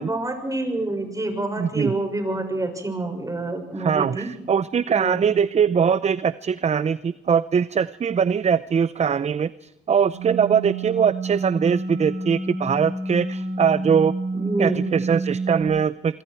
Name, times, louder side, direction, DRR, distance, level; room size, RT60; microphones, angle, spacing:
voice 1, 0.0-4.3 4.9-5.2 14.3-14.8, right 2 dB, 15° right, 4 dB, 6.5 m, -27 dB
voice 2, 1.6-1.9 3.8-16.2, right 7 dB, 35° right, 17 dB, 0.6 m, -22 dB
sound 1, 10.1-15.6, right 3 dB, 60° right, 6.8 m, -29 dB
26.5 x 24.5 x 4.7 m, 0.97 s
cardioid pair, 90°, 20 cm